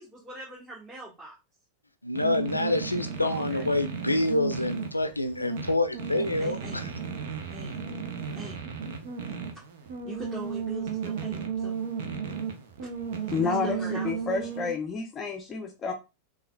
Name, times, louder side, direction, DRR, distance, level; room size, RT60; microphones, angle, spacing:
voice 1, 0.0-1.3 3.2-3.7 6.4-6.8 7.5-7.8 8.3-8.6 10.0-11.8 13.4-14.1, right 1 dB, 15° right, 1.3 m, -42 dB
voice 2, 2.0-6.9, left 2 dB, 85° left, 0.5 m, -27 dB
sound 1, 2.1-14.7, right 6 dB, 55° right, 0.7 m, -34 dB
voice 3, 13.3-15.9, left 5 dB, 25° left, 0.6 m, -30 dB
5.4 x 2.4 x 2.2 m
figure-of-eight pair, 90°, 0 cm